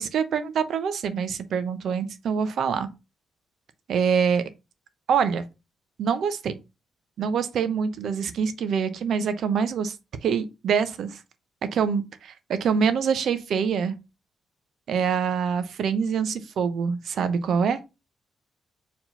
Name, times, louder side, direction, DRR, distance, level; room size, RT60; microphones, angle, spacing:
voice 1, 0.0-2.9 3.9-4.4 5.1-5.4 6.0-6.5 7.2-9.9 10.2-11.2 11.7-13.9 14.9-17.8, right 6 dB, 70° right, 0.8 m, -25 dB
4.7 x 3.7 x 5.4 m
supercardioid pair, 65°, 0 cm